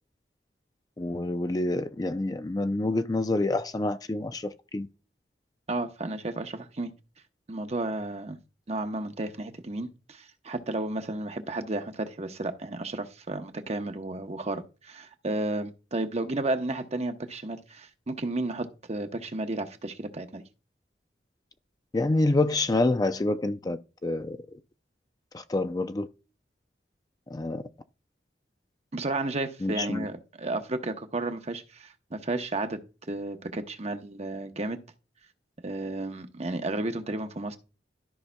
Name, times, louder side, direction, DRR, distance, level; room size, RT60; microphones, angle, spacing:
voice 1, 1.0-4.9 21.9-24.4 25.3-26.1 27.3-27.6 29.6-30.1, left 2 dB, 20° left, 0.4 m, -27 dB
voice 2, 5.7-6.9 7.5-8.4 8.7-20.4 28.9-32.8 33.1-34.8 35.6-37.6, right 2 dB, 40° right, 0.9 m, -32 dB
13.5 x 5.6 x 2.2 m
head